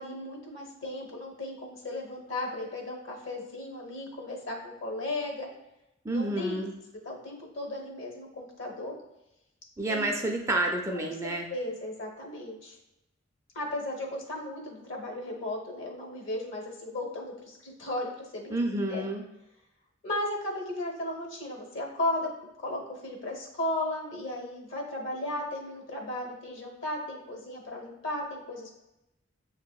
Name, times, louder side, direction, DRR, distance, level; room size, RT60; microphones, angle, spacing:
voice 1, 0.0-5.5 6.1-6.6 7.0-9.0 9.9-10.1 10.9-12.8 13.5-18.6 18.9-19.0 20.0-22.3 22.6-28.7, left 1 dB, 65° left, 1 dB, 0.9 m, -35 dB
voice 2, 6.0-6.7 9.8-11.5 18.5-19.2, right 1 dB, 15° right, 1 dB, 0.4 m, -29 dB
6.8 x 2.7 x 2.3 m, 0.90 s
head